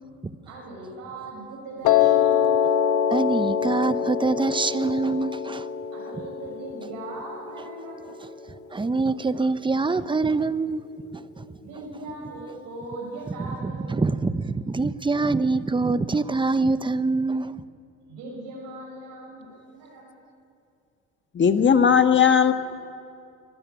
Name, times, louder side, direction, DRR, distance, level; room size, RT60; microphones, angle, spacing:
voice 1, 0.4-2.6 5.9-8.0 11.6-14.2 18.1-20.1, right 2 dB, 75° right, 6.3 m, -39 dB
Piano, 1.8-8.0, left 9 dB, 70° left, 1.7 m, -24 dB
voice 2, 3.1-5.7 8.7-10.8 11.1-11.5 13.4-17.6, right 3 dB, 15° right, 0.9 m, -25 dB
voice 3, 21.3-22.5, left 7 dB, 40° left, 1.6 m, -17 dB
24.5 x 13.5 x 9.5 m
supercardioid pair, 80°, 31 cm